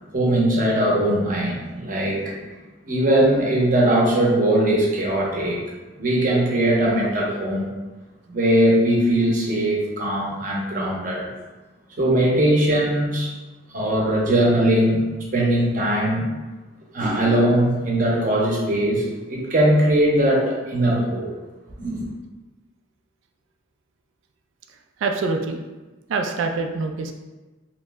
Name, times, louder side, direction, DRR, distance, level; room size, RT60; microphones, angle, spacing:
voice 1, 0.0-2.4 2.9-5.6 6.0-7.7 8.3-11.3 12.0-13.3 13.7-15.1 15.3-16.3 16.9-19.0 19.3-21.3 21.8-22.1, right 1 dB, 45° right, -3 dB, 0.6 m, -20 dB
voice 2, 25.0-25.6 26.1-27.1, right 3 dB, 85° right, 5 dB, 0.3 m, -25 dB
2.7 x 2.1 x 3.3 m, 1.2 s
head